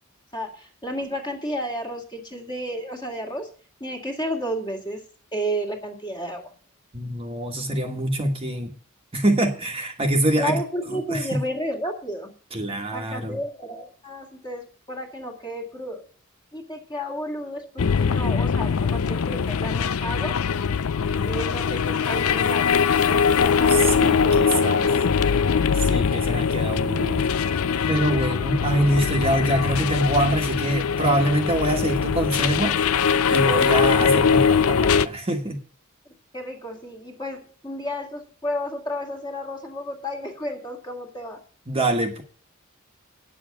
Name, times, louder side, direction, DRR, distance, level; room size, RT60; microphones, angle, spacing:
voice 1, 0.3-3.5 3.8-5.0 5.3-6.5 10.4-12.3 12.9-16.1 16.5-20.4 21.2-25.0 36.3-41.4, equal, 20° left, 2 dB, 2.1 m, -32 dB
voice 2, 6.9-8.7 9.1-10.6 10.9-11.4 12.5-13.4 23.7-24.9 25.8-27.3 27.9-32.8 33.3-35.6 41.7-42.2, right 1 dB, 25° right, 2 dB, 1.4 m, -24 dB
sound 1, 17.8-35.1, left 6 dB, 75° left, 0.5 m, -22 dB
9.1 x 7.0 x 8.2 m, 0.42 s
head